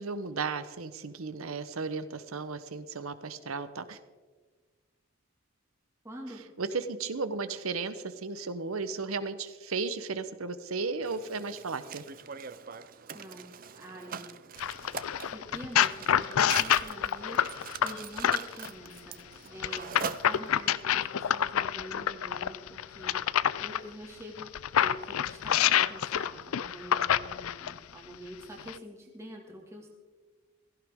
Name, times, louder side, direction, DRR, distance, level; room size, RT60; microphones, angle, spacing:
voice 1, 0.0-4.0 6.6-12.0, right 4 dB, 85° right, 12 dB, 0.9 m, -35 dB
voice 2, 6.0-6.4 12.9-14.3 15.3-24.5 24.8-29.9, equal, 15° right, -1 dB, 2.0 m, -46 dB
Mechanisms, 11.0-20.8, right 7 dB, 40° right, 0.5 m, -43 dB
sound 1, 14.6-18.7 19.6-23.8 24.4-27.8 28.6-28.7, left 10 dB, 85° left, 0.4 m, -27 dB
16.5 x 15.0 x 3.6 m, 1.3 s
head